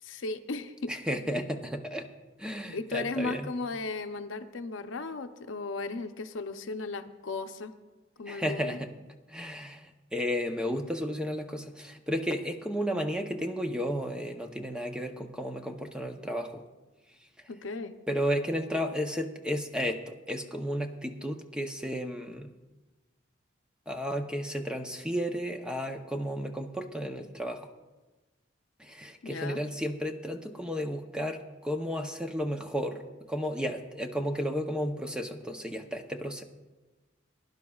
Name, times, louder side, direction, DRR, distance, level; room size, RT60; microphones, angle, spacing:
voice 1, 0.0-0.9 2.7-7.7 8.2-8.8 17.5-18.0 29.2-29.6, left 3 dB, 80° left, 8 dB, 0.6 m, -36 dB
voice 2, 0.9-2.1 2.4-3.5 8.3-8.9 9.3-16.6 18.1-22.5 23.9-27.7 28.8-36.4, equal, 5° right, 4 dB, 0.6 m, -33 dB
21.0 x 11.0 x 2.3 m, 1.2 s
head